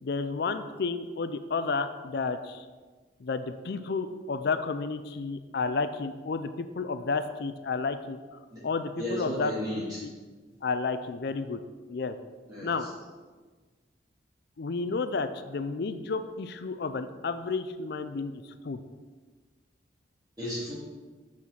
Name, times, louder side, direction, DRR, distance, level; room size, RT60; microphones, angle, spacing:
voice 1, 0.0-2.7 3.2-9.5 10.0-10.1 10.6-11.6 11.9-12.2 12.6-12.9 14.6-18.8, left 4 dB, 60° left, 10 dB, 0.5 m, -31 dB
voice 2, 9.0-10.0 12.5-12.9 20.4-20.7, left 1 dB, 20° right, -10 dB, 2.5 m, -34 dB
7.3 x 6.2 x 5.9 m, 1.4 s
head